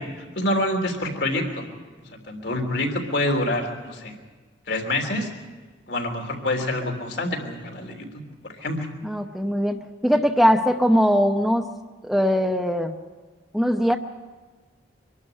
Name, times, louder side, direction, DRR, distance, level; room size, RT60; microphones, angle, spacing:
voice 1, 0.0-1.7 2.3-4.2 4.7-5.3 5.9-8.1 8.6-8.9, left 1 dB, 70° left, 3 dB, 3.3 m, -26 dB
voice 2, 9.0-11.7 12.0-12.9 13.5-14.0, equal, ahead, 3 dB, 0.8 m, -21 dB
25.0 x 12.0 x 8.9 m, 1.4 s
head